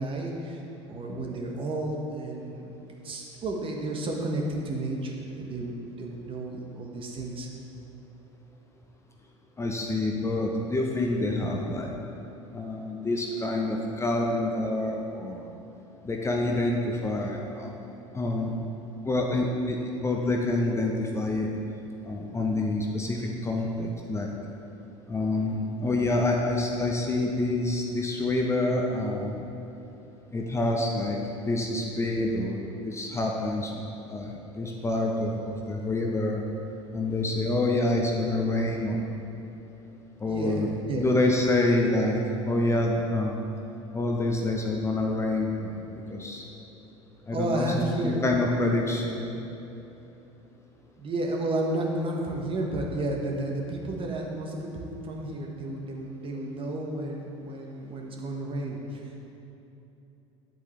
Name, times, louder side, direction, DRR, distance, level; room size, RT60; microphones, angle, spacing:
voice 1, 0.0-2.8 3.0-7.5 40.2-41.1 47.3-48.2 51.0-59.3, right 1 dB, 35° right, 0 dB, 1.4 m, -32 dB
voice 2, 9.6-11.9 12.5-15.5 16.0-17.7 18.1-18.5 19.0-19.8 20.0-21.5 22.0-24.3 25.1-29.4 30.3-31.2 31.4-36.4 36.9-39.0 40.2-40.7 41.0-42.2 42.5-43.4 43.9-46.4 47.3-49.3, left 2 dB, 15° left, 0 dB, 0.9 m, -27 dB
9.1 x 8.1 x 3.3 m, 3.0 s
figure-of-eight pair, 70°, 16 cm